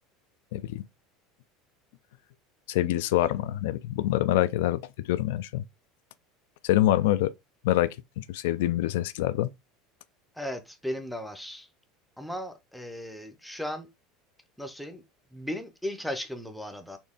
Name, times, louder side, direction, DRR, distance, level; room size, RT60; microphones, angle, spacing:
voice 1, 0.5-0.8 2.7-5.6 6.6-7.3 7.6-7.9 8.2-9.5, left 14 dB, 80° left, 0.4 m, -25 dB
voice 2, 10.4-11.7 12.2-13.9 14.6-15.0 15.3-17.0, left 1 dB, ahead, 0.5 m, -36 dB
4.3 x 2.7 x 3.5 m
cardioid pair, 180°, 0 cm